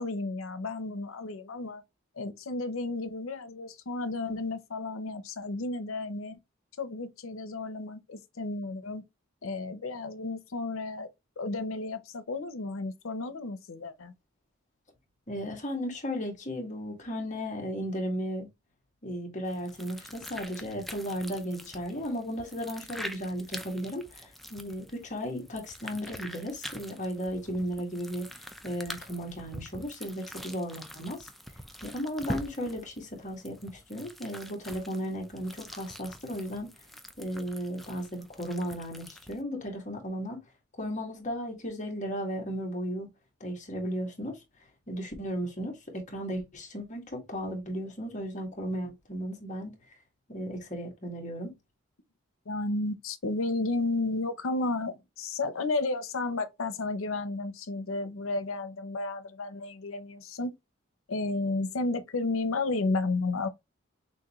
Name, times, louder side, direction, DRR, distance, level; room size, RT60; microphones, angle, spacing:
voice 1, 0.0-1.8 2.2-6.4 6.8-9.0 9.4-11.1 11.4-14.1 52.5-60.5 61.1-63.5, left 3 dB, 90° left, 0.7 m, -32 dB
voice 2, 15.3-18.5 19.0-28.3 28.6-31.3 31.8-36.7 37.2-40.4 40.8-43.1 43.4-44.4 44.9-49.8 50.3-51.5, equal, 35° left, 1.6 m, -35 dB
sound 1, 19.5-39.4, equal, ahead, 0.5 m, -45 dB
6.3 x 2.6 x 2.9 m
head